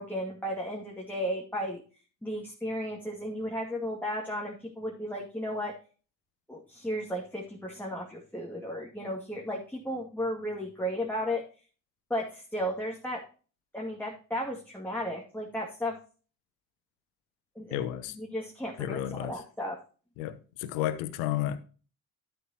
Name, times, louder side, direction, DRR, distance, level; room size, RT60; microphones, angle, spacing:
voice 1, 0.0-1.8 2.2-5.7 6.5-11.4 12.1-13.2 13.7-16.0 17.6-17.9 18.1-19.8, equal, 5° left, 2.3 m, -34 dB
voice 2, 17.7-18.2 18.8-19.3 20.2-21.6, left 12 dB, 65° left, 1.1 m, -32 dB
12.5 x 6.9 x 2.9 m
figure-of-eight pair, 45°, 50 cm